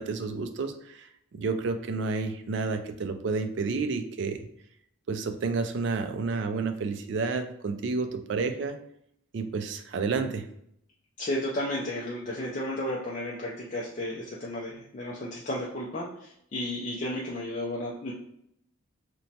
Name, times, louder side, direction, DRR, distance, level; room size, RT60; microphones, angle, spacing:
voice 1, 0.0-4.4 5.1-8.8 9.3-10.5, right 4 dB, 60° right, 7 dB, 0.3 m, -30 dB
voice 2, 11.2-18.1, left 1 dB, 35° left, -4 dB, 0.3 m, -33 dB
2.9 x 2.1 x 2.7 m, 0.73 s
head